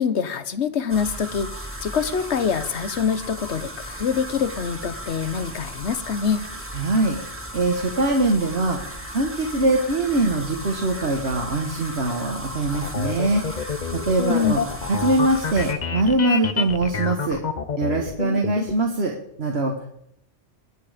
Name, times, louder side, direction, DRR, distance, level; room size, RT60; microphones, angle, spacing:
voice 1, 0.0-6.4 14.3-14.6, left 6 dB, 75° left, 13 dB, 1.3 m, -25 dB
sound 1, 0.9-15.7, equal, 10° right, 2.1 m, -36 dB
voice 2, 6.7-7.2 7.5-8.8 9.1-13.5 13.9-14.6 14.9-17.4 17.8-19.8, right 2 dB, 65° right, 1 dB, 1.7 m, -22 dB
sound 2, 12.7-18.7, left 6 dB, 40° left, 1.0 m, -27 dB
21.5 x 8.8 x 5.1 m, 0.74 s
omnidirectional pair, 1.2 m